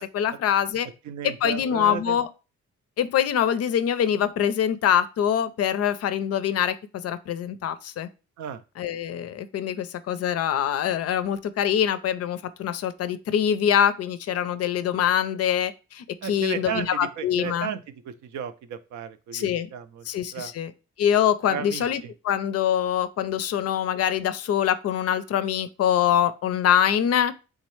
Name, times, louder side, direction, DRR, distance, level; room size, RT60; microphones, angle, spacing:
voice 1, 0.0-0.9 1.2-2.3 3.0-8.1 8.8-17.7 19.3-19.7 20.1-20.7 21.0-27.3, left 9 dB, 55° left, 0.4 m, -24 dB
voice 2, 1.1-2.2 8.4-8.6 16.2-17.8 18.1-20.0 20.3-20.5 21.5-21.9, right 8 dB, 70° right, 0.5 m, -34 dB
3.6 x 3.1 x 3.1 m
cardioid pair, 90°, 30 cm